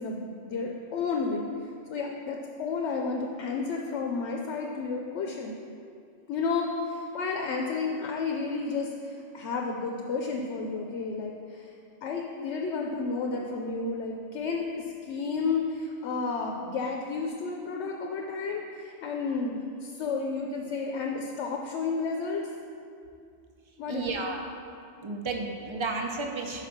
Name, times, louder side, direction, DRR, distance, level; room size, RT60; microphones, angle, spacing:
voice 1, 0.0-1.5 1.9-5.5 6.3-11.7 12.0-19.5 19.8-22.5 23.8-24.2, left 4 dB, 75° left, 1 dB, 0.9 m, -31 dB
voice 2, 23.9-24.5 25.0-26.7, right 3 dB, 45° right, 2 dB, 0.4 m, -32 dB
5.1 x 4.9 x 5.7 m, 2.4 s
omnidirectional pair, 1.2 m